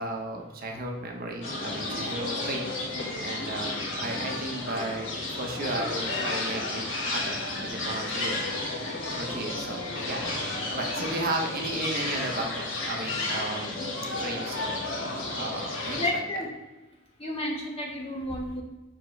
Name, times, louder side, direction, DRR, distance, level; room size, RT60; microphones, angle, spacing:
voice 1, 0.0-2.7 3.2-8.4 9.1-10.3 10.7-13.8 14.1-14.8 15.3-16.2, right 2 dB, 45° right, 1 dB, 1.0 m, -34 dB
sound 1, 1.4-16.1, left 2 dB, 65° left, 1.6 m, -32 dB
voice 2, 15.9-16.5 17.2-18.6, left 1 dB, 30° left, -1 dB, 1.3 m, -31 dB
7.3 x 6.0 x 3.2 m, 1.1 s
head